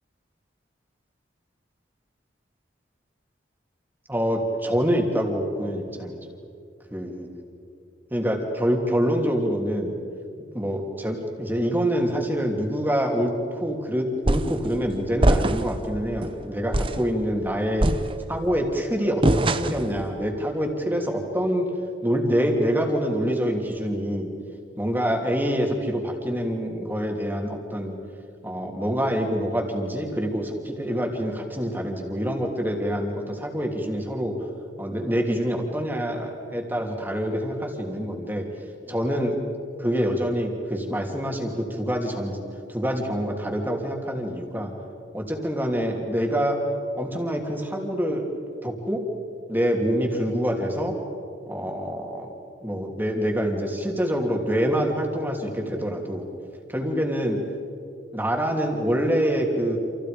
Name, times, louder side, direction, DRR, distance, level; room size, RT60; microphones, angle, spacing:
voice 1, 4.1-6.2 6.9-7.4 8.1-9.9 10.5-17.9 18.3-21.7 22.0-24.3 24.8-27.9 28.4-34.3 34.8-38.4 38.8-39.4 39.8-42.4 42.7-44.7 45.1-46.6 47.0-48.3 48.6-49.0 49.5-50.9 51.5-52.3 52.6-56.2 56.7-57.4 58.1-59.8, equal, 10° right, 1 dB, 3.1 m, -26 dB
sound 1, 14.3-14.6 15.2-15.8 16.2-16.3 16.7-17.1 17.8-18.5 19.2-19.9, right 1 dB, 30° right, 0.8 m, -22 dB
29.5 x 28.0 x 5.2 m, 2.4 s
head